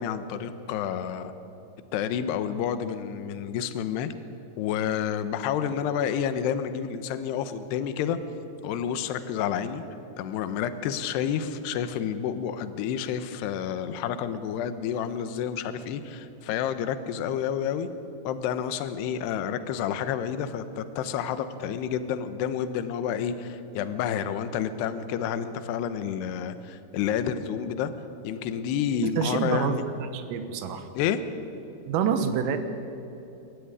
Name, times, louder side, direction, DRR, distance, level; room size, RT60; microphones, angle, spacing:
voice 1, 0.0-1.3 1.9-4.1 4.6-8.2 8.6-9.8 10.2-17.9 18.2-27.9 28.2-29.8 30.9-31.2, left 8 dB, 75° left, 11 dB, 2.6 m, -29 dB
voice 2, 29.0-30.9 31.9-32.6, right 7 dB, 80° right, 8 dB, 3.8 m, -27 dB
28.0 x 14.0 x 9.7 m, 2.9 s
omnidirectional pair, 6.0 m